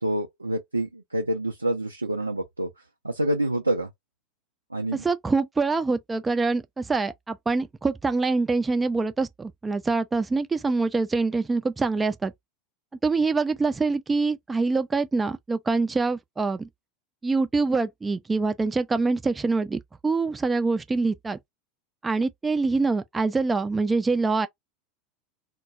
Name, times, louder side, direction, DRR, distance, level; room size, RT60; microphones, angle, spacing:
voice 1, 0.0-2.7 3.0-3.9 4.7-5.0, right 1 dB, 85° right, 0.4 m, -27 dB
voice 2, 4.9-12.3 13.0-16.7 17.2-21.4 22.0-24.5, right 3 dB, 15° right, 0.4 m, -25 dB
2.2 x 2.0 x 3.6 m
figure-of-eight pair, 80°, 0 cm